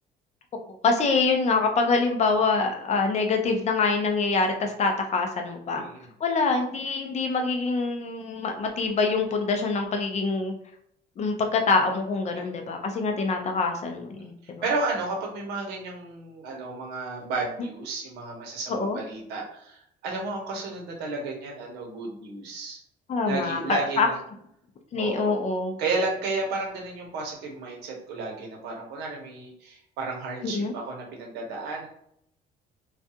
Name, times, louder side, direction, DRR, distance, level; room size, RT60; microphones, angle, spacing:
voice 1, 0.7-5.8 6.2-10.5 11.2-14.6 18.7-19.0 23.1-24.1 24.9-25.8 30.4-30.8, left 4 dB, 40° left, 4 dB, 0.5 m, -25 dB
voice 2, 5.7-6.1 12.3-12.5 14.2-22.8 23.2-24.2 25.0-25.4 25.8-31.9, right 3 dB, 85° right, -1 dB, 0.9 m, -32 dB
2.4 x 2.2 x 2.7 m, 0.71 s
cardioid pair, 110°, 17 cm